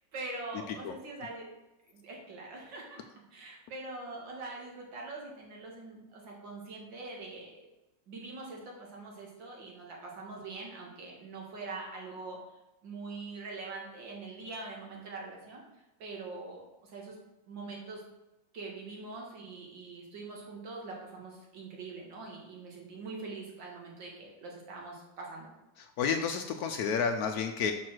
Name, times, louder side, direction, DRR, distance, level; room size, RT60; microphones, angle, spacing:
voice 1, 0.1-1.5 1.9-3.0 3.3-7.7 8.1-12.4 12.8-15.6 16.0-17.2 17.5-18.0 18.5-25.5, right 3 dB, 85° right, -1 dB, 2.4 m, -43 dB
voice 2, 25.8-27.7, left 6 dB, 70° left, 6 dB, 0.9 m, -31 dB
5.5 x 4.6 x 6.0 m, 0.97 s
omnidirectional pair, 2.0 m